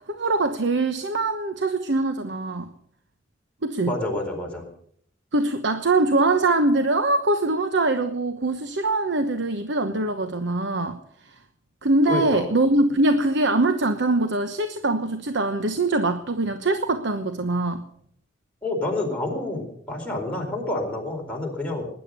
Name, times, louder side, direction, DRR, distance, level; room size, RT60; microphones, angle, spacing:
voice 1, 0.1-2.7 3.6-3.9 5.3-11.3 11.8-17.8, right 2 dB, 65° right, 8 dB, 1.0 m, -23 dB
voice 2, 3.8-4.7 12.1-12.5 18.6-21.9, left 2 dB, 5° left, -1 dB, 4.4 m, -28 dB
19.5 x 10.5 x 6.8 m, 0.67 s
head